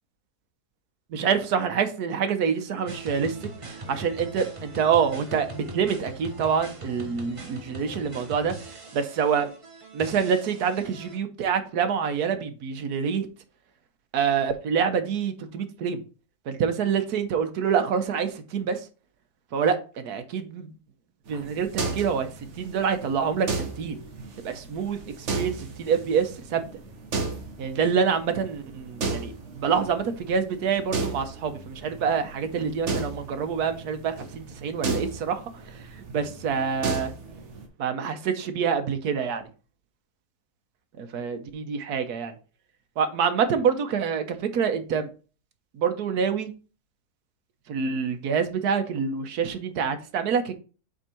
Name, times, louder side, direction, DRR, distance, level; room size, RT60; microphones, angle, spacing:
voice 1, 1.1-9.5 9.9-13.3 14.1-16.0 16.5-18.8 19.5-20.7 21.3-24.0 24.4-26.6 27.6-35.4 35.7-35.9 36.1-37.1 37.8-39.5 41.0-42.3 43.0-45.1 45.7-46.5 47.7-50.5, right 6 dB, 80° right, 8 dB, 1.4 m, -26 dB
sound 1, 2.9-11.2, right 1 dB, 20° right, 1.1 m, -41 dB
sound 2, 21.3-37.7, right 3 dB, 50° right, 1.4 m, -35 dB
7.9 x 3.7 x 4.4 m, 0.36 s
omnidirectional pair, 1.7 m